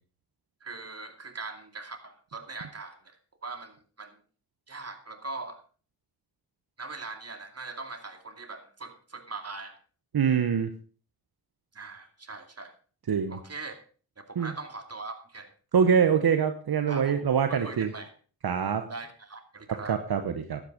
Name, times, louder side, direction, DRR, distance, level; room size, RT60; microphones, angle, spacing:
voice 1, 0.6-3.2 3.4-4.2 4.7-5.6 6.8-9.8 11.7-12.7 13.3-13.8 14.2-15.5 16.9-17.2 17.5-18.1 18.9-20.0, right 3 dB, 40° right, 5 dB, 2.6 m, -41 dB
voice 2, 10.1-10.7 13.1-13.4 14.4-14.5 15.7-17.9 18.4-18.9 19.7-20.6, right 7 dB, 75° right, 7 dB, 1.1 m, -24 dB
12.0 x 8.9 x 5.1 m, 0.40 s
cardioid pair, 45°, 38 cm